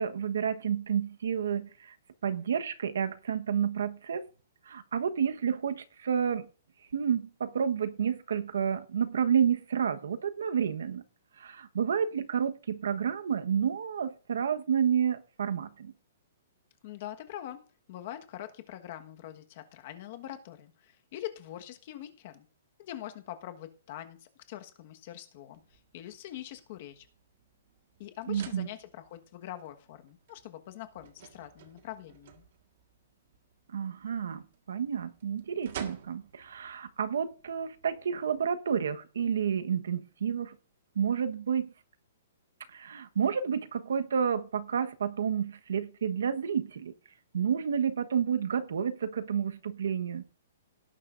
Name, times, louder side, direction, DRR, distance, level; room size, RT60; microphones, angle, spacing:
voice 1, 0.0-1.9 2.2-4.3 4.7-6.5 6.9-11.0 11.4-15.9 28.3-28.7 33.7-40.6 40.9-41.7 42.7-46.9 47.3-50.2, right 7 dB, 80° right, 1.2 m, -30 dB
voice 2, 16.8-22.4 22.8-27.1 28.0-32.4, left 12 dB, 35° left, 1.4 m, -44 dB
sound 1, 25.5-38.5, right 8 dB, 45° right, 1.6 m, -52 dB
17.5 x 10.5 x 2.6 m
hypercardioid pair, 175°, 0 cm